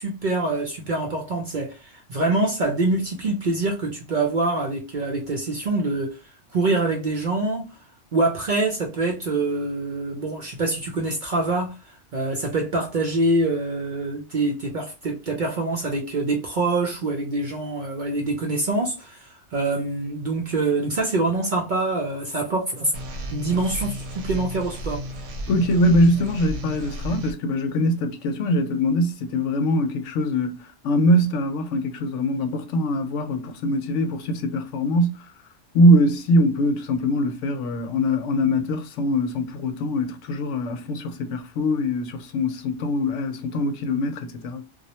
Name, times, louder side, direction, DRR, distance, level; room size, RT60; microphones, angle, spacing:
voice 1, 0.0-6.2 6.5-7.6 8.1-11.7 12.1-23.0 23.3-25.1, right 2 dB, 55° right, 0.6 m, -25 dB
sound 1, 22.9-27.3, equal, 80° right, 0.9 m, -33 dB
voice 2, 25.5-35.2 35.7-44.6, equal, 75° left, 0.9 m, -22 dB
2.3 x 2.0 x 2.7 m
omnidirectional pair, 1.3 m